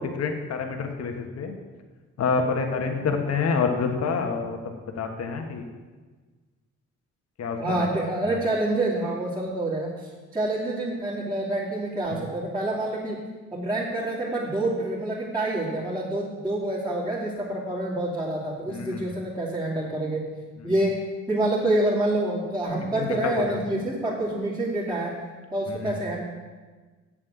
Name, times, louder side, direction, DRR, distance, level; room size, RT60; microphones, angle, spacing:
voice 1, 0.0-1.5 2.2-5.6 7.4-7.9 8.3-8.4 18.7-19.1 23.0-23.6 25.7-26.0, left 5 dB, 55° left, 4 dB, 1.4 m, -28 dB
voice 2, 7.6-13.2 13.5-20.2 20.6-21.0 21.3-25.2 25.5-26.2, right 1 dB, 15° right, -10 dB, 2.9 m, -27 dB
7.9 x 7.4 x 8.1 m, 1.4 s
cardioid pair, 90°, 30 cm